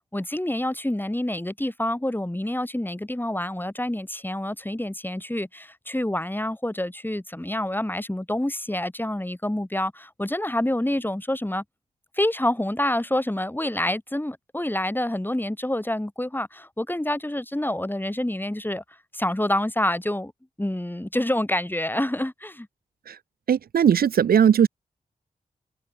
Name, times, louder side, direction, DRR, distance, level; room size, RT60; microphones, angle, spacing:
voice 1, 0.1-11.6 12.1-18.8 19.1-20.3 20.6-22.7, left 1 dB, 15° left, 6.8 m, -27 dB
voice 2, 23.5-24.7, right 8 dB, 80° right, 1.1 m, -18 dB
supercardioid pair, 40°, 15 cm